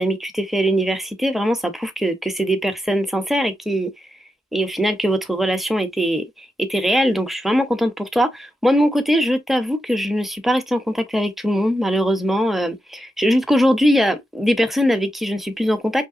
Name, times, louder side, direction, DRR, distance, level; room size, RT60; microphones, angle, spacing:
voice 1, 0.0-3.9 4.5-16.1, equal, ahead, 0.6 m, -21 dB
5.6 x 3.1 x 2.5 m
head